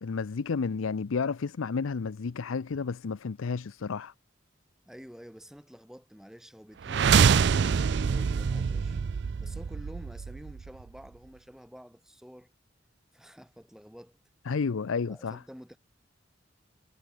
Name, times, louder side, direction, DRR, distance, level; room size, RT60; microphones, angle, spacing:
voice 1, 0.0-4.1 14.5-15.4, left 5 dB, 90° left, 0.5 m, -31 dB
voice 2, 4.9-9.0 9.4-12.5 13.1-14.2 15.1-15.8, equal, ahead, 2.3 m, -49 dB
sound 1, 6.8-10.8, right 6 dB, 55° right, 0.4 m, -25 dB
head